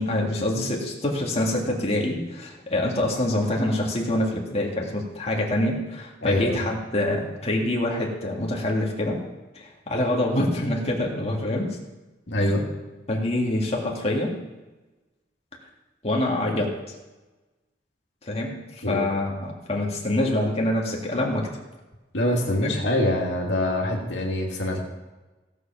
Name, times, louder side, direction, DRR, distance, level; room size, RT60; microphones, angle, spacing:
voice 1, 0.0-9.2 9.5-11.7 12.4-12.6 13.1-14.4 16.0-16.7 18.2-21.5 22.6-22.7, left 1 dB, 35° left, -2 dB, 2.1 m, -25 dB
voice 2, 6.2-6.6 12.3-12.7 18.8-19.1 22.1-24.8, left 1 dB, 75° left, -1 dB, 2.4 m, -24 dB
16.5 x 6.9 x 5.9 m, 1.1 s
head